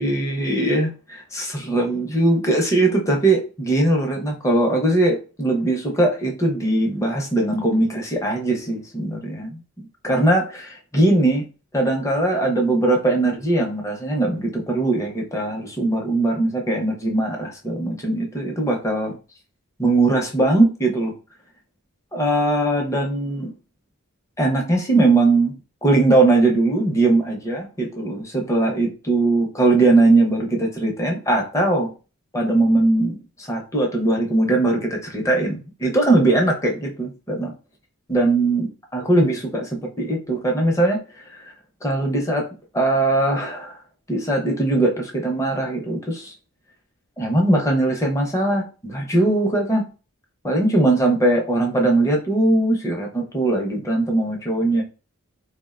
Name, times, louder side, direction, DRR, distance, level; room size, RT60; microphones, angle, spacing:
voice 1, 0.0-9.6 10.0-11.4 11.7-19.2 19.8-21.1 22.1-23.5 24.4-25.6 25.8-31.9 32.3-37.5 38.1-39.7 40.0-41.0 41.3-41.4 41.8-42.5 42.7-43.8 44.1-46.3 47.2-49.9 50.4-54.8, right 2 dB, 15° left, 1 dB, 0.5 m, -20 dB
3.5 x 2.1 x 2.3 m, 0.33 s
head